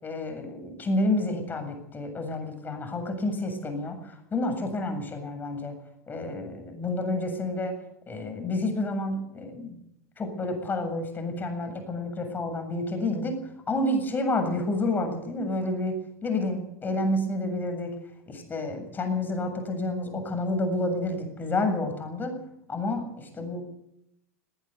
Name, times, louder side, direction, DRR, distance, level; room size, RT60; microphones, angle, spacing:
voice 1, 0.0-5.7 6.1-7.8 8.1-9.8 10.2-13.3 13.7-16.0 16.2-18.0 18.3-22.3 22.7-23.6, left 2 dB, 25° left, 6 dB, 7.5 m, -29 dB
19.0 x 18.0 x 8.2 m, 0.80 s
hypercardioid pair, 85°, 8 cm